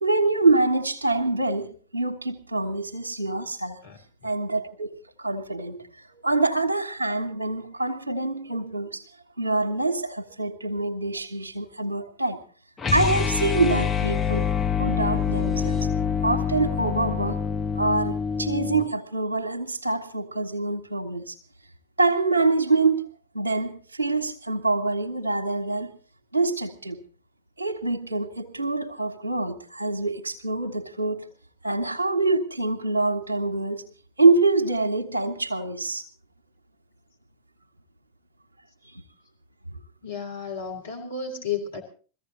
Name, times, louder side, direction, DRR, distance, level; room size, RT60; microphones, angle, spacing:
voice 1, 0.0-3.8 4.2-5.9 6.1-9.0 9.4-12.4 12.9-14.5 14.8-15.8 16.2-17.4 17.7-21.4 22.0-23.1 23.3-25.9 26.3-27.0 27.6-31.3 31.6-33.8 34.2-36.0 38.8-39.0, right 3 dB, 80° right, 1 dB, 1.4 m, -25 dB
sound 1, 12.8-18.9, left 7 dB, 20° left, 1.1 m, -26 dB
voice 2, 40.0-41.8, left 6 dB, 70° left, 2 dB, 3.5 m, -32 dB
22.5 x 15.0 x 3.9 m, 0.38 s
figure-of-eight pair, 90°, 0 cm